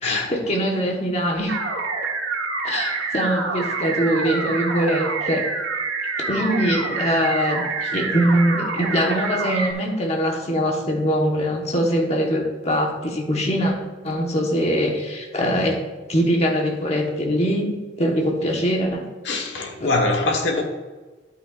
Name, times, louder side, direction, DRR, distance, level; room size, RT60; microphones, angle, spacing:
voice 1, 0.0-1.6 2.6-5.5 6.3-13.7 14.0-15.8 16.1-19.0 19.8-19.9, equal, 35° left, 0 dB, 1.3 m, -22 dB
sound 1, 1.5-9.7, right 4 dB, 80° right, 1.2 m, -27 dB
voice 2, 19.2-20.6, left 2 dB, 65° left, 2 dB, 1.4 m, -23 dB
10.5 x 8.7 x 2.5 m, 1.3 s
head